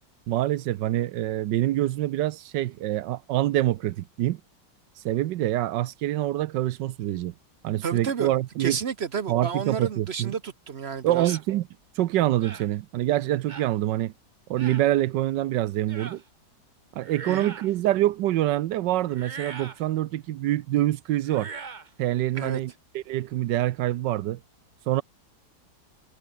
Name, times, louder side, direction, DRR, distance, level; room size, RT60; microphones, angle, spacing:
voice 1, 0.3-4.4 5.0-7.3 7.6-8.8 9.3-10.3 11.0-11.6 12.0-14.1 14.5-16.2 16.9-21.5 22.0-24.4 24.9-25.0, right 14 dB, 80° right, 1.3 m, -25 dB
voice 2, 7.8-8.3 8.6-11.4 17.3-17.5 22.3-22.6, right 6 dB, 45° right, 0.9 m, -31 dB
sound 1, 11.1-11.4 12.4-12.7 13.5-13.7 14.6-14.9 15.9-16.2 17.0-17.7 19.1-19.8 21.2-21.9, right 5 dB, 30° right, 1.1 m, -40 dB
omnidirectional pair, 1.9 m